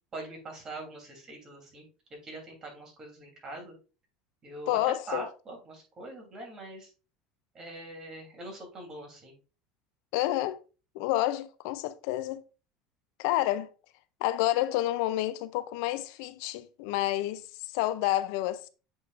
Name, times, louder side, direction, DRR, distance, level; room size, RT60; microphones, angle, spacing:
voice 1, 0.1-1.8 2.2-3.7 4.4-6.9 7.5-9.3, right 2 dB, 25° right, 3.0 m, -42 dB
voice 2, 4.7-5.2 10.1-10.6 10.9-12.4 13.2-13.7 14.2-18.7, left 15 dB, 75° left, 0.5 m, -29 dB
8.1 x 4.7 x 2.5 m
supercardioid pair, 135°, 2 cm